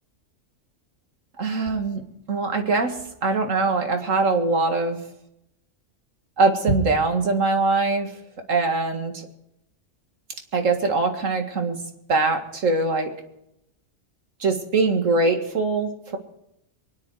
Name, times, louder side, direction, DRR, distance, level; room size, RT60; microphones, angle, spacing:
voice 1, 1.4-2.0 2.3-5.0 6.4-8.1 8.5-9.3 10.5-11.8 12.1-13.1 14.4-16.2, right 3 dB, 80° right, 4 dB, 2.3 m, -22 dB
23.5 x 10.5 x 4.8 m, 0.81 s
omnidirectional pair, 1.3 m